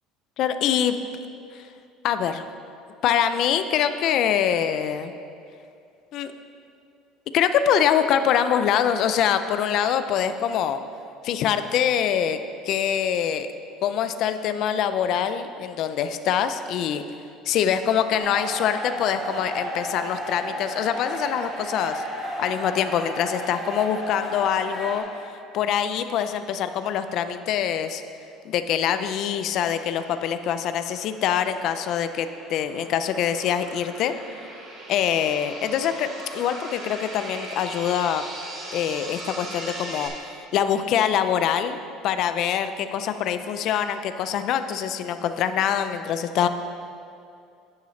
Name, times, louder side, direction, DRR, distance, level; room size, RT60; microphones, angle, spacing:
voice 1, 0.4-1.0 1.5-1.6 2.0-2.5 3.0-5.1 6.1-6.3 7.3-10.8 11.2-12.4 12.6-13.5 13.8-17.0 17.5-22.0 22.4-25.1 25.5-28.0 28.4-34.1 34.9-38.2 38.7-40.1 40.5-41.8 42.0-46.5, left 9 dB, 50° left, 10 dB, 0.4 m, -24 dB
sound 1, 18.2-25.0, equal, 5° right, 1.7 m, -33 dB
sound 2, 29.5-40.1, right 1 dB, 30° right, 1.6 m, -40 dB
10.5 x 8.3 x 3.2 m, 2.5 s
cardioid pair, 160°, 0 cm